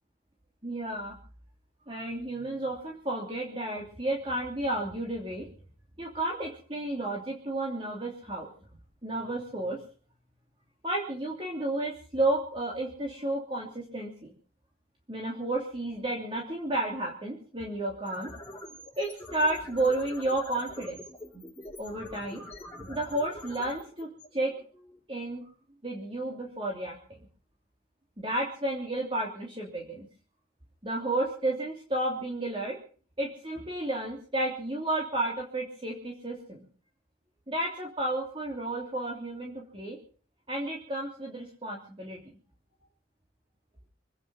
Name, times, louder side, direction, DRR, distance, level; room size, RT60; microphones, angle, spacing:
voice 1, 0.6-1.1 1.9-5.5 6.0-8.5 9.0-9.8 10.8-14.3 15.1-18.3 19.0-21.0 21.8-22.4 22.8-24.5 25.1-25.4 25.8-27.2 28.2-30.0 30.8-32.8 33.2-36.6 37.5-40.0 40.5-42.2, right 1 dB, 30° right, -1 dB, 3.0 m, -32 dB
sound 1, 17.9-25.0, left 1 dB, 15° left, 4.4 m, -46 dB
25.5 x 9.7 x 5.6 m, 0.42 s
head